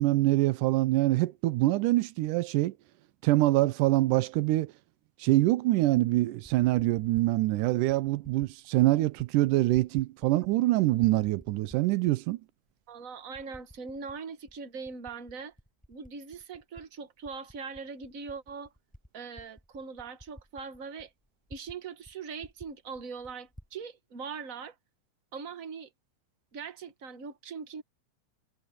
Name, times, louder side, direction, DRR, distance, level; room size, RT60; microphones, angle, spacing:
voice 1, 0.0-2.7 3.2-4.7 5.2-12.4, right 17 dB, 85° right, 2.3 m, -25 dB
Typing, 6.4-7.3 7.9-8.5 8.8-9.3 9.6-10.7 11.0-12.2 12.7-12.8 13.3-14.2 14.5-16.9 17.2-21.8 22.0-22.1 22.4-23.7, equal, ahead, 4.2 m, -53 dB
voice 2, 12.9-15.5 15.9-18.7 19.1-21.1 21.5-24.7 25.3-25.9 26.5-27.8, right 5 dB, 70° right, 0.7 m, -41 dB
omnidirectional pair, 3.7 m